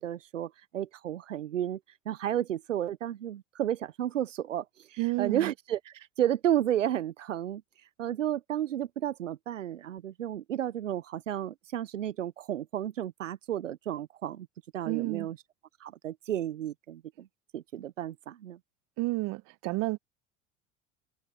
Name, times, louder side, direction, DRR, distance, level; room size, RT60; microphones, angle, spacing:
voice 1, 0.0-1.8 2.1-14.5 14.7-15.4 15.8-17.3 17.5-18.6, right 11 dB, 85° right, 0.8 m, -32 dB
voice 2, 5.0-5.5 14.9-15.3 19.0-20.0, right 22 dB, 60° right, 1.3 m, -30 dB
hypercardioid pair, 70°, 36 cm